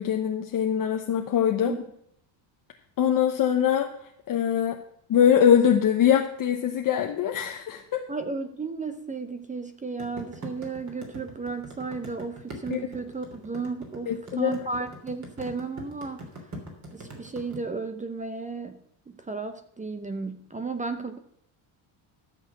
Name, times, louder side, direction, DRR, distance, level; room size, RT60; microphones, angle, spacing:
voice 1, 0.0-1.8 3.0-4.0 4.3-4.8 5.1-8.1 12.7-12.8 14.1-14.7, left 9 dB, 45° left, 3 dB, 1.0 m, -23 dB
voice 2, 8.1-16.2 16.9-21.2, right 4 dB, 15° right, 9 dB, 0.7 m, -34 dB
sound 1, 10.0-17.6, right 1 dB, 35° right, 3.2 m, -41 dB
13.0 x 6.5 x 5.9 m, 0.72 s
cardioid pair, 125°, 48 cm